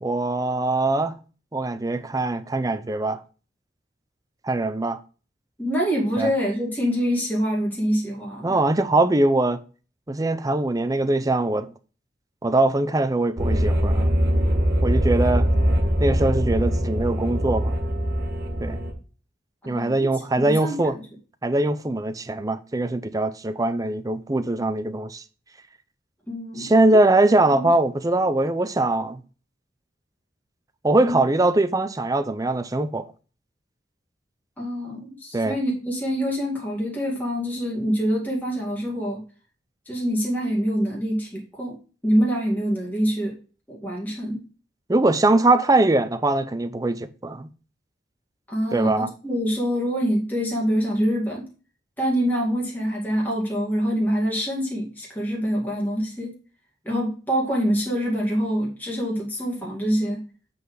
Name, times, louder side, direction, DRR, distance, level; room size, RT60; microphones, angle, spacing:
voice 1, 0.0-1.2 1.5-3.2 4.4-5.0 6.2-6.3 8.4-9.6 10.1-11.7 12.4-14.1 14.8-15.5 16.0-17.7 18.6-18.8 19.7-21.0 21.4-25.2 26.6-29.2 30.8-33.0 35.3-35.6 44.9-47.5 48.7-49.1, right 2 dB, 20° right, 0.5 m, -22 dB
voice 2, 5.6-8.6 19.6-20.1 20.4-20.8 26.3-27.1 27.5-27.7 31.0-31.2 34.6-39.2 39.9-41.8 42.0-43.4 43.7-44.4 48.5-51.5 52.0-56.4 56.8-60.2, equal, 10° left, 2.1 m, -25 dB
sound 1, 13.4-18.9, equal, 55° right, 1.5 m, -22 dB
8.3 x 4.1 x 4.7 m
head